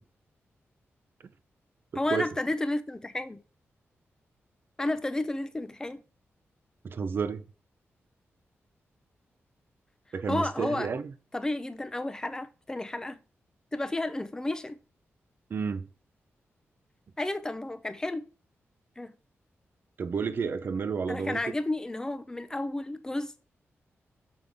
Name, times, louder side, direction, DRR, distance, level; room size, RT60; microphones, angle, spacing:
voice 1, 2.0-3.4 4.8-6.0 10.3-10.9 11.3-13.2 13.7-14.8 17.2-18.2 19.0-19.1 21.1-23.5, left 2 dB, 15° left, 0.6 m, -32 dB
voice 2, 6.8-7.4 10.1-11.1 15.5-15.9 20.0-21.4, right 5 dB, 50° right, 0.6 m, -31 dB
6.7 x 5.4 x 3.5 m
wide cardioid pair, 155°, 5 cm